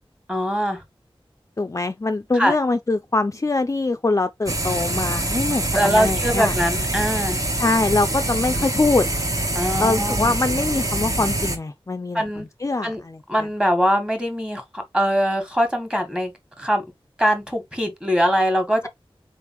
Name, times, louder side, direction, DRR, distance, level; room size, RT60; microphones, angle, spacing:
voice 1, 0.3-0.8 2.3-2.5 5.7-7.4 9.5-10.3 12.1-12.5 12.8-13.0 13.3-16.3 16.6-16.8 17.2-18.9, equal, 10° right, 1.5 m, -22 dB
voice 2, 1.6-6.5 7.6-9.1 9.8-13.2, left 3 dB, 35° left, 0.4 m, -23 dB
sound 1, 4.5-11.6, right 1 dB, 35° right, 1.0 m, -25 dB
4.0 x 3.5 x 3.0 m
wide cardioid pair, 65°, 10 cm